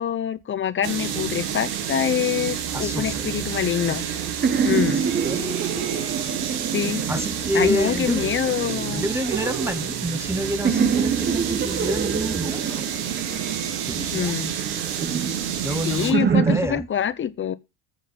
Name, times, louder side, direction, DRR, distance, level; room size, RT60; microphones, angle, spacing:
voice 1, 0.0-4.0 4.6-5.1 6.7-7.0 7.5-9.0 14.1-14.5 15.8-17.5, left 9 dB, 30° left, 0.8 m, -25 dB
sound 1, 0.8-16.1, right 9 dB, 75° right, 2.0 m, -29 dB
voice 2, 2.7-3.3 4.7-5.5 5.7-6.4 7.1-8.3 8.9-12.8 13.9-14.3 15.5-16.9, right 1 dB, 5° right, 0.6 m, -28 dB
sound 2, 3.5-7.8 8.5-10.3 10.6-14.0 14.6-16.6, right 6 dB, 25° right, 0.9 m, -26 dB
8.9 x 6.6 x 5.1 m
cardioid pair, 115°, 37 cm